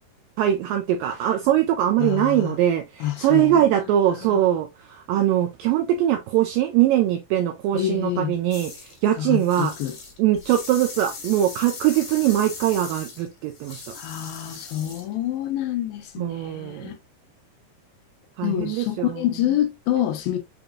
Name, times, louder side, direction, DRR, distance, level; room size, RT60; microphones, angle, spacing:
voice 1, 0.4-8.7 9.0-9.7 10.2-13.8 16.2-16.9 18.4-19.2, right 12 dB, 85° right, 2.0 m, -22 dB
voice 2, 2.0-2.6 3.0-3.9 4.2-4.4 7.7-8.4 9.2-10.0 14.0-17.0 18.4-20.4, left 12 dB, 80° left, 2.3 m, -27 dB
sound 1, 8.5-9.0 9.3-15.1, left 4 dB, 50° left, 3.0 m, -39 dB
7.0 x 2.9 x 2.4 m
omnidirectional pair, 4.6 m